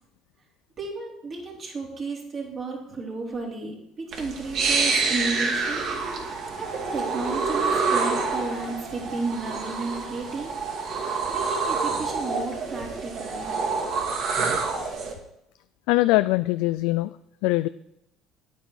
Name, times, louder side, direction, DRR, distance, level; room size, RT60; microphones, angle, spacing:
voice 1, 0.8-5.9 6.6-13.5, right 3 dB, 40° right, -2 dB, 3.7 m, -33 dB
sound 1, 4.1-15.1, right 4 dB, 60° right, 2.3 m, -27 dB
voice 2, 15.9-17.1 17.4-17.7, left 19 dB, 90° left, 12 dB, 0.3 m, -22 dB
10.5 x 9.2 x 4.8 m, 0.80 s
cardioid pair, 120°, 0 cm